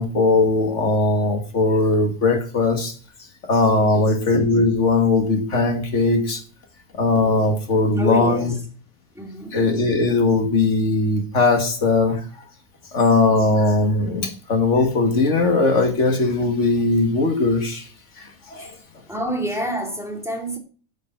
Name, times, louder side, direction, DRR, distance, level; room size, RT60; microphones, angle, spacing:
voice 1, 0.0-2.9 3.5-6.4 7.0-8.5 9.5-12.2 12.9-17.9 18.2-18.7, left 3 dB, 50° left, 2.1 m, -19 dB
voice 2, 3.8-4.1 8.0-8.6 9.1-9.6 18.6-18.8 19.1-20.6, right 1 dB, ahead, 2.3 m, -28 dB
9.6 x 5.4 x 6.8 m
omnidirectional pair, 1.6 m